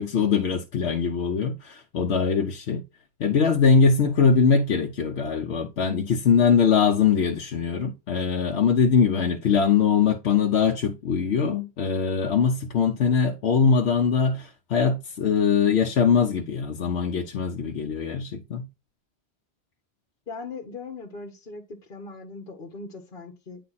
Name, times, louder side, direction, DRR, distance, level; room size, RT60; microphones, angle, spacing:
voice 1, 0.0-2.8 3.2-18.7, left 6 dB, 90° left, 1.0 m, -22 dB
voice 2, 20.3-21.6 21.9-23.6, left 4 dB, 55° left, 1.3 m, -39 dB
9.6 x 3.4 x 4.1 m
omnidirectional pair, 1.1 m